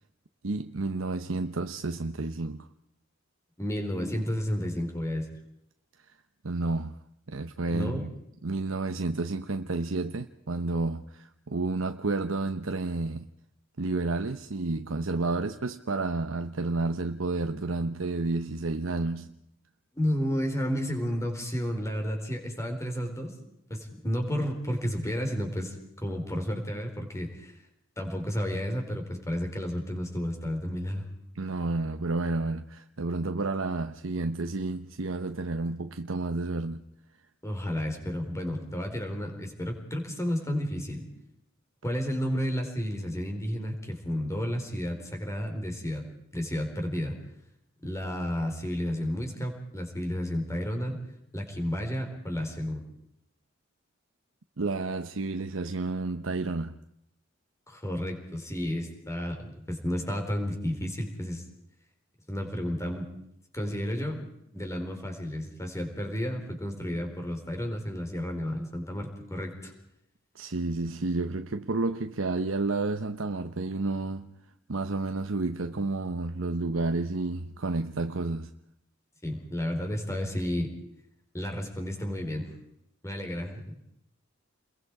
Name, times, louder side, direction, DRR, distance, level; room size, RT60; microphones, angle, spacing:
voice 1, 0.4-2.7 6.4-7.0 7.3-8.1 8.4-13.3 13.8-19.3 31.3-36.8 54.6-56.8 70.3-74.3 74.7-78.5, right 3 dB, 80° right, 0.9 m, -30 dB
voice 2, 3.6-5.3 7.7-8.1 19.9-23.3 23.7-27.5 28.0-31.1 37.4-41.0 41.8-46.0 46.3-47.2 47.8-51.0 51.3-52.8 57.7-61.4 62.3-63.1 63.5-69.7 79.2-80.7 81.3-82.5 83.0-83.6, equal, 15° left, 4.5 m, -32 dB
29.0 x 22.0 x 4.9 m
head